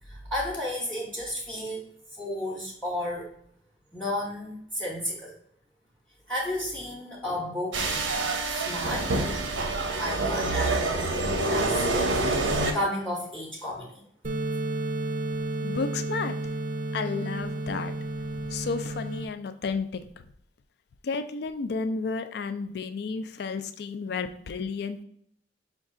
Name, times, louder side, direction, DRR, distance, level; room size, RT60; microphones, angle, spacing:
voice 1, 0.0-3.3 3.9-5.4 6.3-7.8 8.5-9.3 10.0-14.0, left 1 dB, 10° left, -2 dB, 0.7 m, -33 dB
sound 1, 7.7-12.7, right 2 dB, 90° right, 0.7 m, -26 dB
sound 2, 14.2-19.2, right 2 dB, 40° right, 0.5 m, -32 dB
voice 2, 15.6-16.4 16.9-17.9 18.5-20.0 21.0-25.0, left 4 dB, 60° left, 10 dB, 0.4 m, -32 dB
5.3 x 2.3 x 3.6 m, 0.67 s
head